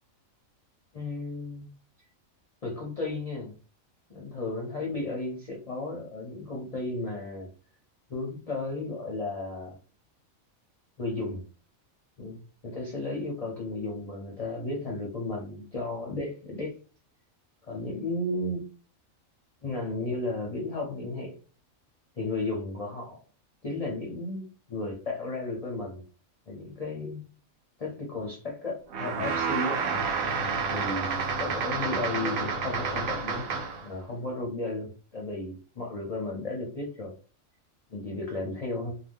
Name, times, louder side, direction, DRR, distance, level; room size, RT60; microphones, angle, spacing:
voice 1, 0.9-1.7 2.6-3.5 4.1-7.5 8.1-9.8 11.0-11.4 12.2-16.7 17.6-18.6 19.6-21.3 22.2-23.2 23.6-26.0 26.5-27.3 27.8-29.9 30.6-33.5 33.8-37.1 37.9-38.9, left 2 dB, 45° left, -1 dB, 0.5 m, -34 dB
sound 1, 28.9-33.9, right 5 dB, 80° right, 1.0 m, -30 dB
2.6 x 2.1 x 3.4 m, 0.37 s
omnidirectional pair, 1.4 m